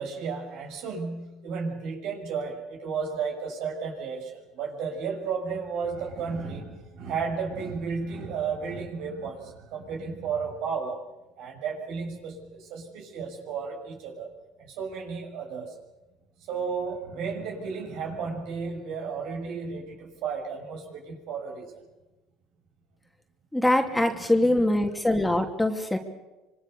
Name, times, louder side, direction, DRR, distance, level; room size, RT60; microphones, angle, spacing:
voice 1, 0.0-11.0 11.4-14.3 14.6-15.7 16.5-21.7, right 5 dB, 70° right, 1 dB, 6.6 m, -33 dB
voice 2, 23.5-26.0, left 1 dB, 5° left, 4 dB, 2.6 m, -23 dB
26.0 x 23.5 x 6.8 m, 1.1 s
supercardioid pair, 100°, 0 cm